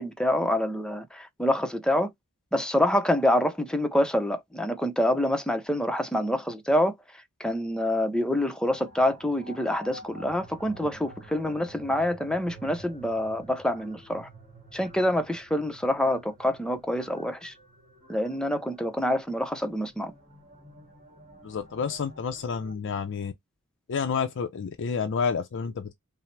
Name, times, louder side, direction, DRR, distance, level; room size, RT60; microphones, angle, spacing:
voice 1, 0.0-2.1 2.5-6.9 7.4-14.3 14.7-17.5 18.1-20.1, left 1 dB, 5° left, 0.6 m, -26 dB
sound 1, 8.7-22.7, right 1 dB, 40° right, 1.7 m, -49 dB
voice 2, 21.4-23.3 23.9-25.9, left 6 dB, 60° left, 0.5 m, -29 dB
5.6 x 2.0 x 3.2 m
head